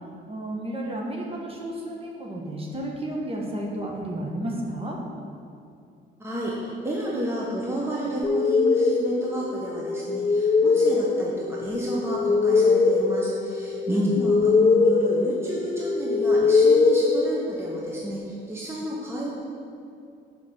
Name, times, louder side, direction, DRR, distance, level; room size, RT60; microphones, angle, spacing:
voice 1, 0.3-5.0 13.9-14.2, right 1 dB, 30° right, -2 dB, 1.3 m, -31 dB
voice 2, 6.2-19.3, right 1 dB, 10° right, -4 dB, 1.1 m, -31 dB
sound 1, 8.2-17.9, left 4 dB, 25° left, 0.5 m, -22 dB
5.3 x 5.2 x 6.0 m, 2.6 s
cardioid pair, 90°, 20 cm